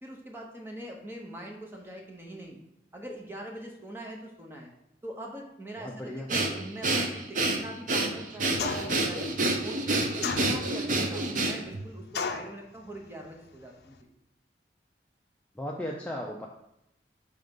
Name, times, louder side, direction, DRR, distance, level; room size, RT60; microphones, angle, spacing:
voice 1, 0.0-2.6 2.9-4.7 5.0-9.3 9.6-10.1 10.4-14.1, right 1 dB, 15° right, 0 dB, 0.8 m, -43 dB
voice 2, 5.8-6.3 15.5-16.5, left 1 dB, 10° left, -2 dB, 0.4 m, -36 dB
Breathing, 6.3-11.8, right 2 dB, 45° right, 0.6 m, -28 dB
sound 1, 8.6-9.1 10.2-10.9 12.1-12.6, left 5 dB, 60° left, 0.5 m, -32 dB
5.2 x 3.4 x 5.2 m, 0.83 s
head